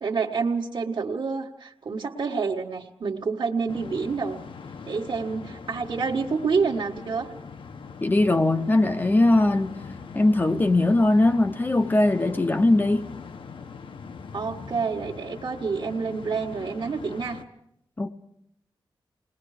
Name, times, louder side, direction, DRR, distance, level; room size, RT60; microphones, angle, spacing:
voice 1, 0.0-4.4 4.8-7.3 14.3-17.4, right 5 dB, 55° right, 1.5 m, -28 dB
sound 1, 3.7-17.4, left 5 dB, 75° left, 1.1 m, -41 dB
voice 2, 8.0-9.8 10.1-13.1 18.0-18.1, left 2 dB, 20° left, 0.7 m, -20 dB
29.5 x 20.5 x 4.9 m
wide cardioid pair, 180°, 9 cm